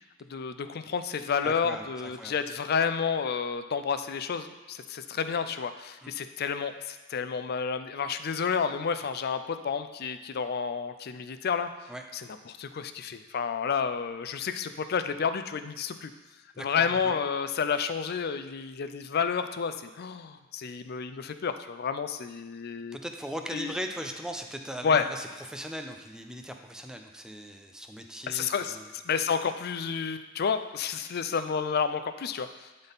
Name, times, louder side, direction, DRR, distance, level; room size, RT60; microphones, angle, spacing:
voice 1, 0.3-11.7 12.1-16.1 16.6-23.0 23.5-23.7 24.8-25.1 28.3-28.8 29.0-32.7, left 6 dB, 50° left, 10 dB, 0.4 m, -30 dB
voice 2, 1.4-2.3 6.0-6.1 11.9-12.0 16.5-17.2 22.9-28.9, equal, 5° right, 4 dB, 0.5 m, -39 dB
12.0 x 4.1 x 3.6 m, 1.2 s
head